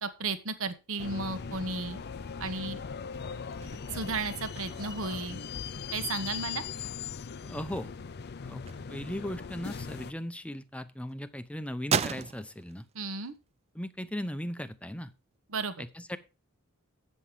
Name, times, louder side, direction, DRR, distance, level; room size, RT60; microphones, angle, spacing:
voice 1, 0.0-2.0 2.4-2.8 3.9-5.4 5.9-6.6 12.9-13.3 15.5-15.8, right 3 dB, 70° right, 10 dB, 1.2 m, -34 dB
sound 1, 1.0-10.1, left 6 dB, 50° left, 0.5 m, -39 dB
sound 2, 1.2-10.6 11.0-13.5 13.8-15.3, right 6 dB, 30° right, 0.4 m, -38 dB
voice 2, 7.4-7.9 8.4-8.6 8.9-12.8 13.7-15.1 15.8-16.2, equal, 5° left, 11 dB, 0.7 m, -37 dB
8.4 x 7.6 x 4.9 m, 0.30 s
head